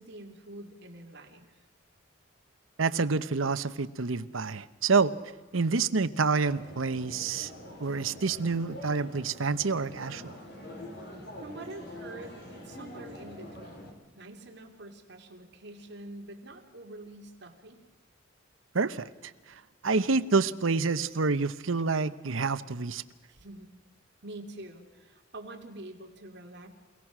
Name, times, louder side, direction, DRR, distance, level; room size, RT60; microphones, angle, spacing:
voice 1, 0.0-1.6 10.9-11.0 11.4-17.8 23.3-23.7 24.2-26.7, right 1 dB, 60° right, 3 dB, 2.8 m, -46 dB
voice 2, 2.8-5.1 5.5-7.5 7.8-10.3 18.7-19.1 19.8-23.0, right 4 dB, 90° right, 13 dB, 0.9 m, -27 dB
sound 1, 6.4-13.9, left 1 dB, 55° left, 4.4 m, -45 dB
29.0 x 17.5 x 6.1 m, 1.3 s
head